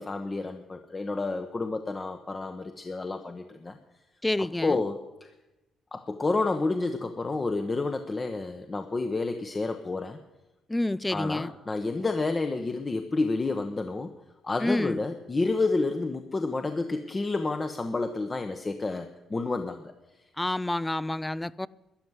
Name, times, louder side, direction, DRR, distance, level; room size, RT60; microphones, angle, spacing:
voice 1, 0.0-3.8 4.6-5.3 5.9-10.2 11.1-14.1 14.4-19.9, left 3 dB, 25° left, 1.0 m, -30 dB
voice 2, 4.2-4.8 10.7-11.5 14.6-15.0 20.4-21.7, left 1 dB, 10° left, 0.4 m, -28 dB
13.0 x 10.5 x 8.1 m
cardioid pair, 90°, 0 cm